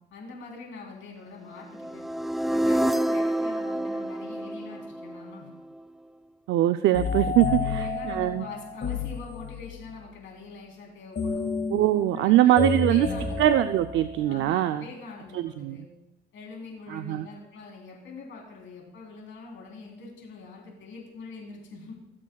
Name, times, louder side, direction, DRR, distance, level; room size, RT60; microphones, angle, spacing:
voice 1, 0.1-2.1 2.5-5.5 7.5-11.5 12.1-13.4 14.3-15.9 16.3-22.0, left 4 dB, 75° left, -1 dB, 3.5 m, -44 dB
sound 1, 1.7-5.8, right 1 dB, ahead, 0.3 m, -28 dB
voice 2, 6.5-8.5 11.7-13.1 13.4-14.8 15.3-15.8 16.9-17.3, right 13 dB, 80° right, 9 dB, 0.4 m, -22 dB
sound 2, 6.9-9.9 11.2-14.4, left 5 dB, 55° left, 2.0 m, -31 dB
19.0 x 7.4 x 2.3 m, 0.95 s
cardioid pair, 90°, 20 cm